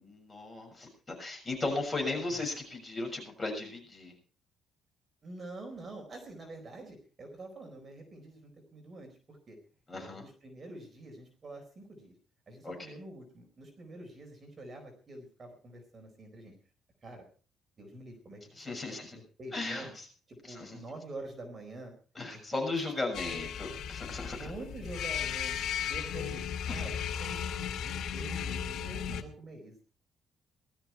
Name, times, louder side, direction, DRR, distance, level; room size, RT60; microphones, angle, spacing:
voice 1, 0.2-4.1 9.9-10.2 12.6-12.9 18.6-19.2 19.5-20.0 20.5-20.8 22.1-24.5 25.8-25.9 26.7-26.9, left 2 dB, 15° left, 1 dB, 6.5 m, -36 dB
voice 2, 5.2-9.6 9.9-12.1 12.5-16.5 17.0-17.2 17.8-18.6 19.1-19.9 20.3-21.9 22.8-22.9 23.3-23.4 24.3-25.5 25.9-26.4 26.7-26.9 27.2-29.9, right 2 dB, 25° right, 3 dB, 4.5 m, -46 dB
sound 1, 23.1-29.2, left 8 dB, 80° left, 2.5 m, -35 dB
19.0 x 13.5 x 4.6 m, 0.40 s
cardioid pair, 170°, 0 cm